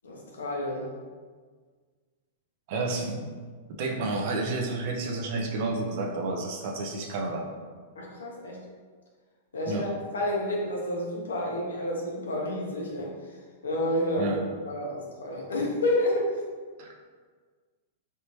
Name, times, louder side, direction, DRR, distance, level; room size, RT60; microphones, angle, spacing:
voice 1, 0.0-0.9 7.9-8.6 9.5-13.1 13.6-14.4 14.6-16.3, left 1 dB, 85° left, -2 dB, 0.9 m, -29 dB
voice 2, 2.7-3.3 3.8-7.5 9.7-9.9 14.2-14.4 16.8-16.9, right 2 dB, 55° right, 1 dB, 0.6 m, -30 dB
3.4 x 2.9 x 3.0 m, 1.5 s
hypercardioid pair, 115°, 0 cm